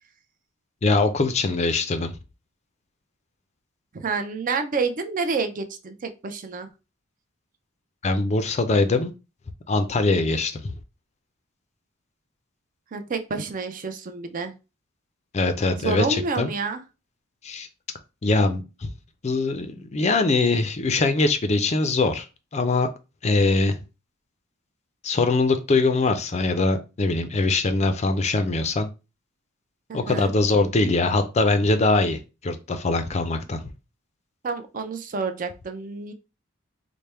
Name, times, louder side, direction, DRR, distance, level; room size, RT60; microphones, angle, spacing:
voice 1, 0.8-2.1 8.0-9.1 9.7-10.7 15.3-16.5 17.4-17.7 18.2-18.9 19.2-22.3 22.5-22.9 23.2-23.8 25.0-28.9 29.9-33.6, left 3 dB, 30° left, 8 dB, 0.4 m, -22 dB
voice 2, 3.9-6.7 12.9-14.5 15.8-16.8 29.9-30.3 34.4-36.1, right 4 dB, 40° right, 7 dB, 0.5 m, -29 dB
3.3 x 2.1 x 4.2 m, 0.30 s
head